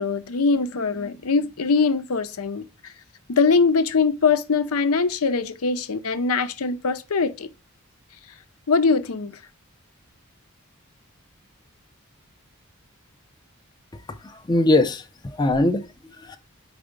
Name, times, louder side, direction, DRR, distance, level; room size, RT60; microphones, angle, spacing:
voice 1, 0.0-2.9 3.3-7.5 8.7-9.4, left 4 dB, 85° left, 0.7 m, -22 dB
voice 2, 14.2-15.1 15.3-16.4, left 2 dB, 20° left, 0.5 m, -21 dB
4.8 x 4.4 x 5.1 m
head